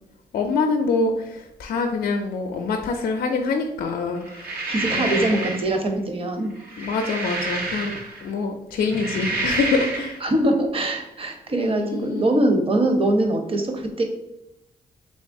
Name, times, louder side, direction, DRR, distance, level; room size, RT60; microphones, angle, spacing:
voice 1, 0.3-5.6 6.8-7.9 8.2-10.2 11.6-12.4, left 4 dB, 75° left, 3 dB, 0.4 m, -25 dB
sound 1, 4.3-5.7 6.6-8.3 8.8-10.2, right 2 dB, 75° right, 0.6 m, -29 dB
voice 2, 4.7-6.5 10.2-14.0, right 1 dB, 35° right, 4 dB, 0.7 m, -22 dB
3.5 x 3.1 x 2.6 m, 0.85 s
cardioid pair, 65°, 16 cm